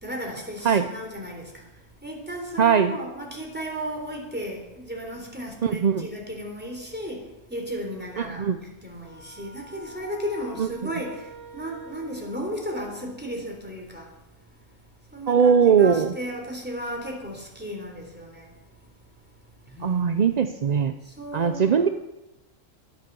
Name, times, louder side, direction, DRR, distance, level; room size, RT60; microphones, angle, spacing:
voice 1, 0.0-1.7 2.0-14.1 15.1-18.5 19.7-20.4 21.1-21.9, equal, 5° right, 3.6 m, -35 dB
voice 2, 2.6-3.0 5.6-6.1 8.2-8.6 10.6-10.9 15.3-16.1 19.8-20.9 21.3-21.9, right 7 dB, 45° right, 0.5 m, -20 dB
sound 1, 9.0-13.4, right 1 dB, 45° left, 3.4 m, -47 dB
13.0 x 11.0 x 6.9 m
omnidirectional pair, 1.3 m